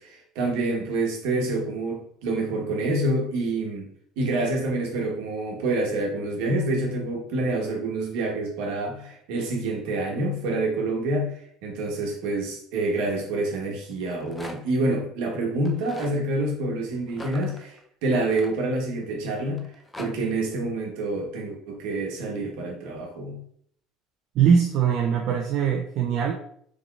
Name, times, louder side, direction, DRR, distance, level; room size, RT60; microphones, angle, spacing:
voice 1, 0.0-3.9 4.2-11.3 11.6-19.7 20.0-23.4, right 2 dB, 80° right, 0 dB, 1.1 m, -27 dB
Rattle, 13.9-14.8 15.6-16.2 17.1-19.0 19.6-20.1, left 1 dB, 15° left, 0.5 m, -42 dB
voice 2, 24.3-26.3, right 7 dB, 60° right, 0 dB, 0.4 m, -21 dB
3.8 x 3.6 x 2.4 m, 0.65 s
supercardioid pair, 110°, 0 cm